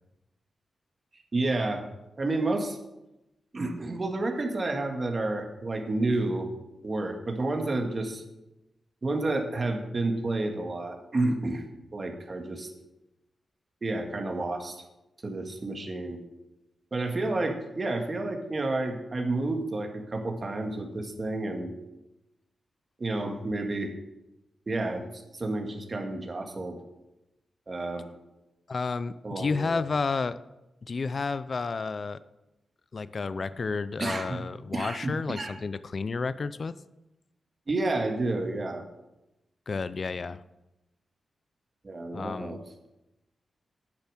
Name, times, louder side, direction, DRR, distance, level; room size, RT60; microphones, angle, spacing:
voice 1, 1.3-1.8 2.2-2.8 3.5-6.5 6.8-8.2 9.0-11.6 11.9-12.7 13.8-14.8 15.2-16.2 16.9-21.7 23.0-23.9 24.7-25.0 25.3-26.8 27.7-28.0 29.2-29.8 34.0-34.4 34.7-35.6 37.7-38.8 41.8-42.6, right 2 dB, 35° right, 4 dB, 1.8 m, -30 dB
voice 2, 28.7-30.4 30.8-32.2 32.9-36.7 39.7-40.4 42.1-42.6, left 4 dB, 45° left, 15 dB, 0.4 m, -31 dB
9.9 x 7.0 x 7.5 m, 0.95 s
wide cardioid pair, 95°, 0 cm